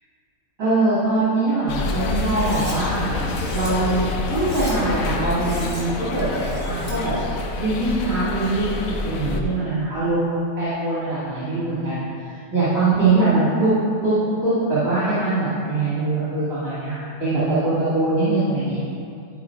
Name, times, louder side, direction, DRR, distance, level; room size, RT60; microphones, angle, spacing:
voice 1, 0.6-3.2 3.5-7.1 7.6-12.1 12.5-13.7 14.0-18.8, right 2 dB, 50° right, -12 dB, 2.7 m, -22 dB
sound 1, 1.7-9.4, left 2 dB, 60° left, 1.0 m, -27 dB
Cutlery silverware, 2.3-2.7 3.2-3.7 4.3-4.7 5.3-5.8 6.2-6.9, equal, 5° right, 2.3 m, -39 dB
13.5 x 4.8 x 4.7 m, 2.5 s
omnidirectional pair, 1.9 m